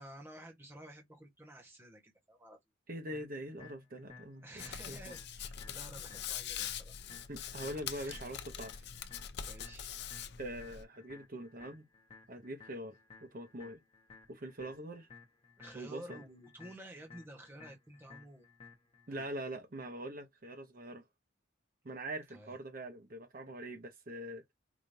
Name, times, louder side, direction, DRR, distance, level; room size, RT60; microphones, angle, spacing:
voice 1, 0.0-2.6 4.4-6.9 7.5-8.2 8.7-8.8 9.5-9.9 15.6-18.5 19.1-19.3 22.3-22.6, right 1 dB, 10° right, 1.2 m, -52 dB
voice 2, 2.9-4.4 4.9-5.1 7.3-8.7 10.4-11.8 12.3-13.8 14.3-15.1 15.7-16.2 19.1-21.0 21.8-24.4, right 1 dB, 45° right, 0.9 m, -43 dB
sound 1, 3.1-19.1, left 5 dB, 30° left, 1.0 m, -57 dB
Hands, 4.6-10.8, left 9 dB, 60° left, 0.6 m, -43 dB
4.9 x 2.6 x 2.7 m
head